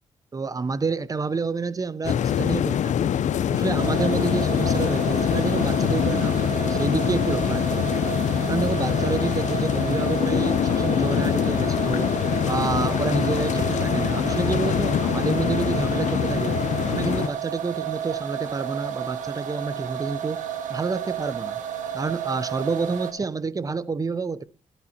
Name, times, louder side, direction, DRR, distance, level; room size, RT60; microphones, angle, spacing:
voice 1, 0.3-3.1 3.5-7.9 8.5-12.1 12.4-16.5 16.9-20.4 20.7-21.6 21.9-24.4, right 4 dB, 30° right, 0.5 m, -28 dB
sound 1, 2.0-17.3, left 9 dB, 70° left, 0.6 m, -24 dB
sound 2, 3.8-23.1, right 9 dB, 90° right, 1.6 m, -32 dB
sound 3, 11.3-13.8, left 10 dB, 90° left, 1.2 m, -46 dB
12.0 x 11.0 x 4.2 m
cardioid pair, 85°, 13 cm